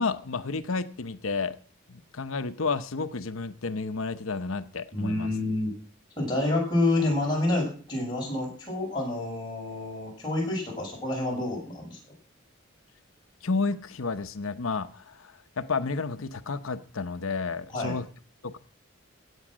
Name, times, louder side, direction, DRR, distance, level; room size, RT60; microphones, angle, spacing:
voice 1, 0.0-1.6 1.9-5.3 13.4-18.0 18.4-18.6, left 4 dB, 80° left, 10 dB, 0.9 m, -31 dB
voice 2, 4.9-5.7 6.2-12.0 17.7-18.0, left 2 dB, 20° left, -3 dB, 7.1 m, -28 dB
16.0 x 9.0 x 6.2 m, 0.42 s
head